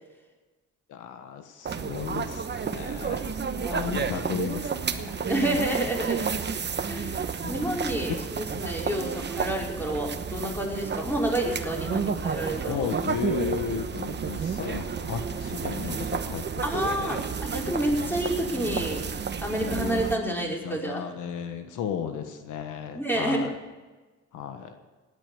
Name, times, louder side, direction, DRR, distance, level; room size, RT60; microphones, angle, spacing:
voice 1, 0.9-3.4 3.7-5.3 7.4-8.2 8.5-8.7 12.7-17.4 18.5-18.9 19.5-23.5 24.3-24.7, left 8 dB, 85° left, 7 dB, 1.5 m, -35 dB
sound 1, 1.7-20.2, right 6 dB, 35° right, 1.0 m, -31 dB
voice 2, 3.3-3.9 5.3-6.4 6.8-12.9 16.6-21.1 22.9-23.5, right 1 dB, 5° left, -2 dB, 4.8 m, -29 dB
17.5 x 10.0 x 7.0 m, 1.2 s
cardioid pair, 90°, 30 cm